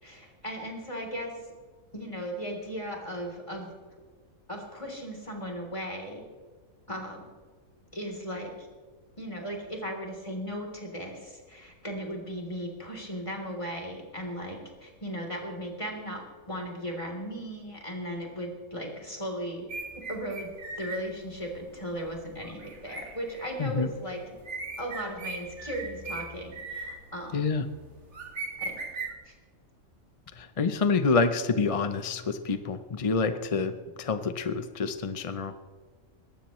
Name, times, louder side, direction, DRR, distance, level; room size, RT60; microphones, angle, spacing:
voice 1, 0.0-1.3 1.9-3.7 4.5-6.2 6.9-7.3 7.9-8.7 9.2-19.8 20.1-20.5 20.8-24.4 24.8-27.4 28.6-28.7 29.3-29.4, equal, 20° left, 0 dB, 3.5 m, -37 dB
sound 1, 19.7-29.1, right 3 dB, 55° right, 2.0 m, -40 dB
voice 2, 27.3-27.6 30.4-33.7 34.0-35.5, left 4 dB, 35° left, 9 dB, 0.6 m, -27 dB
21.0 x 17.5 x 3.1 m, 1.5 s
omnidirectional pair, 1.5 m